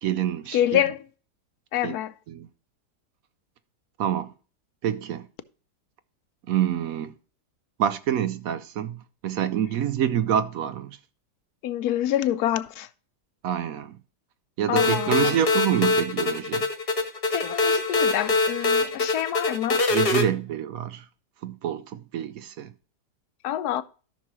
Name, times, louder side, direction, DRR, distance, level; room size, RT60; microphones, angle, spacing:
voice 1, 0.0-0.8 1.8-2.0 2.3-2.5 4.0-4.3 4.8-5.3 6.5-7.1 7.8-10.9 13.4-14.0 14.6-16.7 19.9-21.0 21.4-22.7, right 10 dB, 70° right, 0.9 m, -27 dB
voice 2, 0.5-1.0 1.7-2.1 11.6-12.9 14.7-15.4 17.3-19.8 23.4-23.8, left 12 dB, 75° left, 1.1 m, -26 dB
sound 1, 14.8-20.2, left 3 dB, 40° left, 1.2 m, -23 dB
13.5 x 6.2 x 3.0 m
omnidirectional pair, 1.8 m